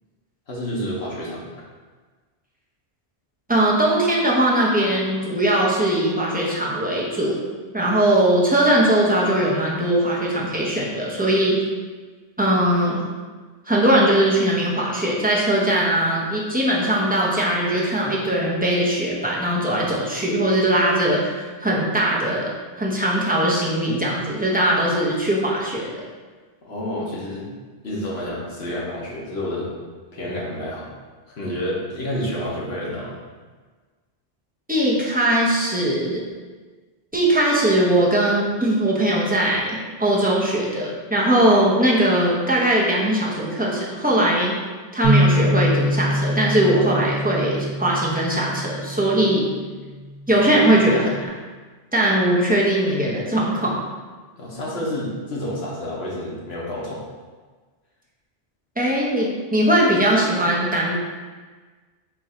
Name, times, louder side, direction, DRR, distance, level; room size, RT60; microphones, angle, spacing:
voice 1, 0.5-1.4 26.6-27.5 27.8-29.7 30.1-30.9 31.3-33.2 54.4-57.0, left 1 dB, 65° left, -5 dB, 1.3 m, -29 dB
voice 2, 3.5-7.4 7.7-11.6 12.4-13.0 13.7-26.0 34.7-36.2 37.1-44.6 44.9-49.5 50.3-51.3 51.9-53.8 58.8-61.0, right 1 dB, 10° right, -5 dB, 0.5 m, -20 dB
Bass guitar, 45.0-51.3, equal, 90° right, 1.1 m, -25 dB
4.5 x 2.6 x 4.2 m, 1.4 s
omnidirectional pair, 1.2 m